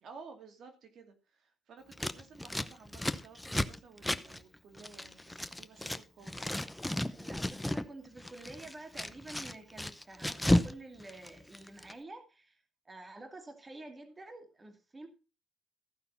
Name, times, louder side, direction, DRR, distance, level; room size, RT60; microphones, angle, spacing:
voice 1, 0.0-6.5, right 5 dB, 60° right, 5 dB, 2.4 m, -54 dB
Scissors, 1.9-6.0 6.3-7.9 8.2-10.7 11.0-11.9, left 1 dB, 5° left, 0.7 m, -33 dB
voice 2, 7.1-12.6 12.9-15.1, right 2 dB, 20° right, 5 dB, 2.4 m, -49 dB
14.5 x 5.8 x 5.7 m, 0.31 s
cardioid pair, 115°, 0 cm